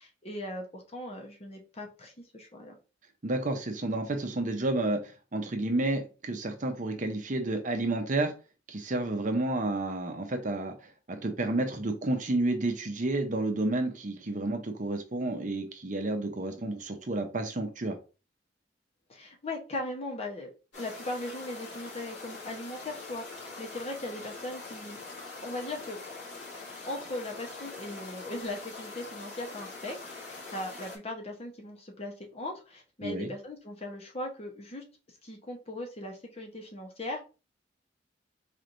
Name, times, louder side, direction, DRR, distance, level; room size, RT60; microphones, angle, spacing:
voice 1, 0.0-2.8 19.1-20.5 20.8-25.0 25.4-26.0 26.9-34.8 35.2-37.2, left 1 dB, 35° left, 2 dB, 0.9 m, -39 dB
voice 2, 3.2-5.0 5.3-8.3 8.7-10.7 11.1-18.0 33.0-33.3, right 2 dB, 45° right, 5 dB, 0.7 m, -30 dB
sound 1, 20.7-31.0, left 3 dB, 80° left, 2.0 m, -43 dB
4.2 x 3.2 x 2.6 m, 0.32 s
head